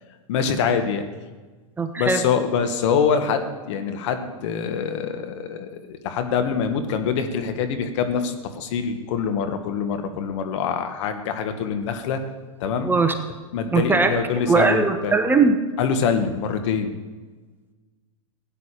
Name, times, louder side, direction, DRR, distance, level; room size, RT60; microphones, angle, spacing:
voice 1, 0.3-1.0 2.0-12.2 12.6-12.9 13.5-15.1 15.8-16.9, left 6 dB, 55° left, 7 dB, 1.8 m, -24 dB
voice 2, 1.8-2.2 12.8-13.1 13.7-14.1 14.5-15.6, right 4 dB, 10° right, 7 dB, 1.0 m, -19 dB
17.0 x 9.8 x 5.1 m, 1.3 s
hypercardioid pair, 110°, 18 cm